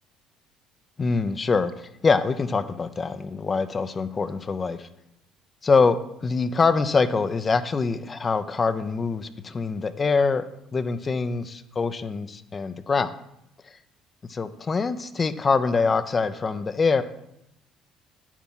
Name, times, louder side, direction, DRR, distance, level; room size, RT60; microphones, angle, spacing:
voice 1, 1.0-4.9 5.6-10.4 10.7-13.1 14.3-17.0, left 4 dB, 35° left, 11 dB, 0.7 m, -24 dB
9.5 x 7.4 x 5.6 m, 0.81 s
hypercardioid pair, 60°, 0 cm